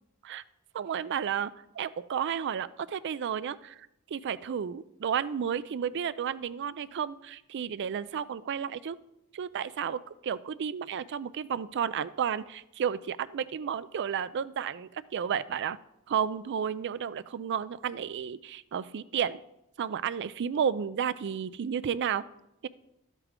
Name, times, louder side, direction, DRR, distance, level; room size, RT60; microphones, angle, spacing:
voice 1, 0.7-9.0 9.3-15.8 16.1-19.4 19.8-22.2, right 8 dB, 50° right, 16 dB, 0.4 m, -32 dB
12.0 x 8.2 x 3.6 m, 0.84 s
head